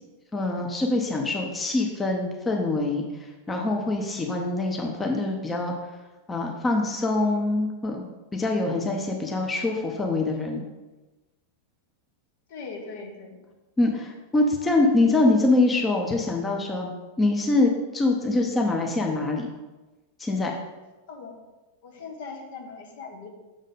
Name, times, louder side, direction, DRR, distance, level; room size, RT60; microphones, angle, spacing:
voice 1, 0.3-3.0 3.5-5.7 6.3-8.0 8.3-10.6 13.8-19.5 20.2-20.5, left 2 dB, 15° left, 1 dB, 0.8 m, -24 dB
voice 2, 12.5-13.4 21.1-21.4 21.8-23.3, left 4 dB, 55° left, 1 dB, 1.1 m, -40 dB
6.3 x 3.7 x 5.3 m, 1.1 s
figure-of-eight pair, 90°, 0 cm